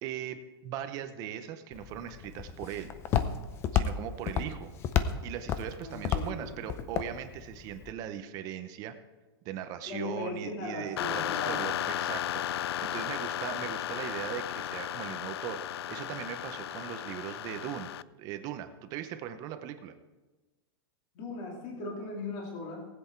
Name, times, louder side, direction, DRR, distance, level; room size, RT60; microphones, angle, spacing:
voice 1, 0.0-2.9 3.7-4.7 5.2-9.0 9.4-17.9 18.2-19.9, right 10 dB, 30° right, 9 dB, 0.7 m, -39 dB
Walk footsteps, 1.7-7.9, left 8 dB, 20° left, 0.5 m, -32 dB
voice 2, 5.8-6.5 9.8-11.6 21.1-22.9, left 3 dB, 35° left, -1 dB, 2.6 m, -38 dB
sound 1, 11.0-18.0, left 12 dB, 80° left, 0.4 m, -34 dB
18.5 x 7.9 x 4.5 m, 1.2 s
supercardioid pair, 165°, 13 cm